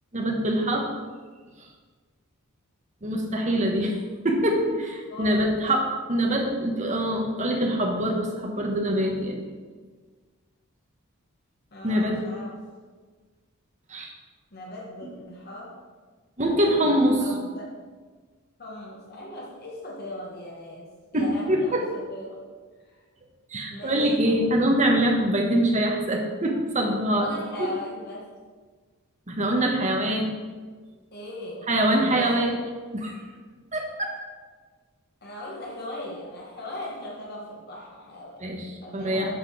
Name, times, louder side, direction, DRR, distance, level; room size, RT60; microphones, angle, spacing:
voice 1, 0.1-0.9 3.0-4.0 4.2-5.8 6.1-9.4 11.8-12.2 13.9-14.1 15.0-15.1 16.4-17.2 21.1-21.8 23.5-27.3 29.3-30.3 31.7-32.6 32.9-33.2 33.7-34.1 38.4-38.6 38.9-39.3, right 1 dB, 35° right, 1 dB, 1.3 m, -24 dB
voice 2, 5.1-5.6 11.7-12.7 14.5-15.8 17.2-17.7 18.6-22.4 22.9-23.0 23.7-24.6 27.2-28.3 31.1-31.7 32.0-32.6 35.2-38.5 38.8-39.3, left 1 dB, 45° left, -3 dB, 1.4 m, -38 dB
7.7 x 5.4 x 6.2 m, 1.5 s
head